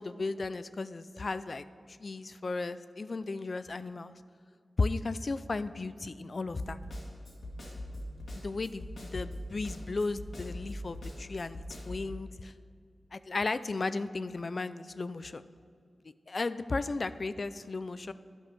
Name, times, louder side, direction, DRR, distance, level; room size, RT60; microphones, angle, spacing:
voice 1, 0.0-4.1 4.8-6.8 8.3-12.5 13.1-15.5 16.3-18.1, left 3 dB, 60° left, 14 dB, 0.3 m, -35 dB
Snare drum, 6.6-12.1, left 1 dB, 85° left, 1.8 m, -41 dB
10.0 x 5.3 x 5.3 m, 2.4 s
cardioid pair, 45°, 0 cm